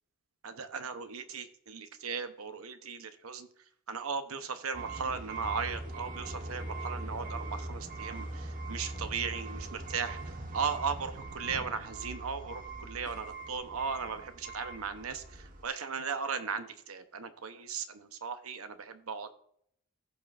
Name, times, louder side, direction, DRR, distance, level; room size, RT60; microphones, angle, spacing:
voice 1, 0.4-3.5 3.9-19.3, right 6 dB, 85° right, 9 dB, 0.9 m, -37 dB
sound 1, 4.7-15.6, right 2 dB, 40° right, 1.3 m, -41 dB
16.0 x 5.6 x 2.6 m, 0.68 s
head